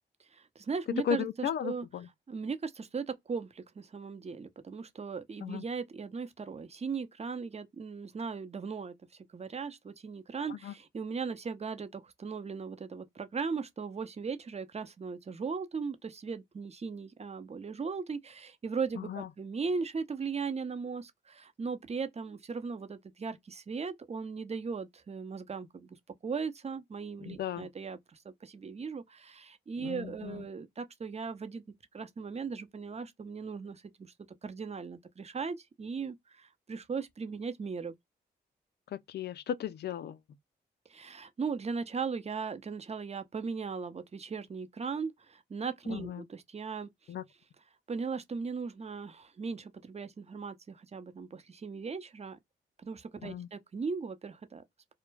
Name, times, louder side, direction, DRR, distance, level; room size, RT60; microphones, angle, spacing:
voice 1, 0.3-1.9 2.3-8.9 9.3-26.0 26.2-31.6 31.9-34.1 34.4-37.9 40.9-46.9 47.9-52.4 52.8-54.6, right 5 dB, 35° right, 0.7 m, -38 dB
voice 2, 1.0-2.1 5.4-5.6 10.5-10.7 19.0-19.3 27.3-27.7 29.8-30.4 38.9-40.2 45.9-46.2 47.1-47.2 53.2-53.5, left 9 dB, 60° left, 0.4 m, -36 dB
2.2 x 2.1 x 3.2 m
supercardioid pair, 55°, 19 cm